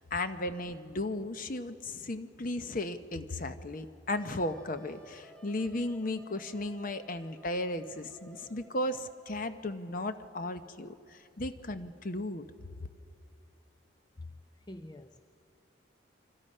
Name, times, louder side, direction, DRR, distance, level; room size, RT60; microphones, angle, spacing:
voice 1, 0.0-12.4, left 1 dB, 45° left, 10 dB, 0.8 m, -35 dB
Wind instrument woodwind instrument, 4.1-9.6, left 1 dB, 5° left, 1.0 m, -57 dB
voice 2, 14.7-15.2, left 2 dB, 20° left, 8 dB, 0.5 m, -45 dB
28.0 x 25.0 x 5.5 m, 2.6 s
head